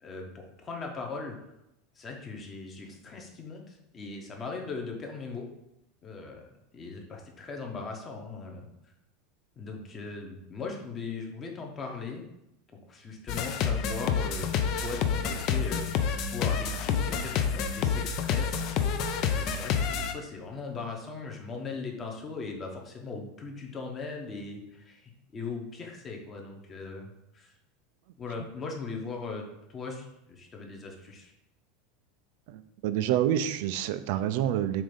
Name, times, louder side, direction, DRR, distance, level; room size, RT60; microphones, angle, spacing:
voice 1, 0.0-1.4 1.9-5.5 6.0-6.4 6.7-8.7 9.6-12.2 12.9-18.6 19.1-27.5 28.2-31.3, left 4 dB, 20° left, 1 dB, 1.0 m, -39 dB
sound 1, 13.3-20.1, left 7 dB, 40° left, 0.5 m, -28 dB
voice 2, 32.5-34.8, right 11 dB, 60° right, 11 dB, 0.4 m, -28 dB
7.3 x 2.7 x 5.2 m, 0.87 s
supercardioid pair, 160°, 0 cm